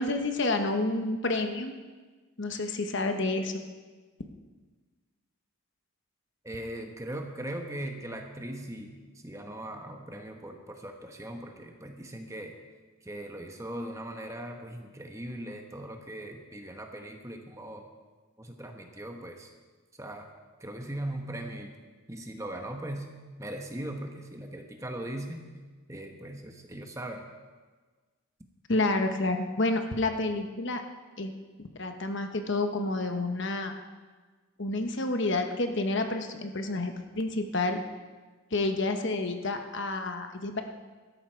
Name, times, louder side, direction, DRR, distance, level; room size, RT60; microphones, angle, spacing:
voice 1, 0.0-1.7 2.4-3.6 28.7-30.8 31.2-31.3 31.7-33.7 34.6-37.8 38.5-40.6, left 2 dB, 55° left, 6 dB, 1.1 m, -29 dB
voice 2, 6.4-8.9 9.2-12.5 13.0-17.9 18.4-19.5 20.0-20.3 20.6-21.7 22.1-23.1 23.4-25.5 25.9-27.3, right 1 dB, 15° right, 3 dB, 1.1 m, -39 dB
17.0 x 13.5 x 4.6 m, 1.4 s
head